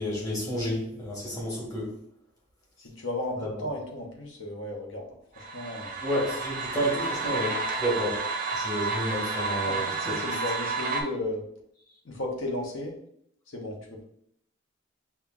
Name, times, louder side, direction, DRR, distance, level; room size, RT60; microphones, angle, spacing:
voice 1, 0.0-1.9 3.4-3.5 6.0-8.2 8.5-10.2, equal, 20° left, -5 dB, 1.2 m, -30 dB
voice 2, 2.8-6.1 9.6-11.4 12.0-12.9 13.5-14.0, left 1 dB, 70° left, 1 dB, 0.8 m, -35 dB
sound 1, 5.4-11.0, right 3 dB, 40° right, 0.5 m, -31 dB
5.5 x 2.3 x 2.3 m, 0.69 s
head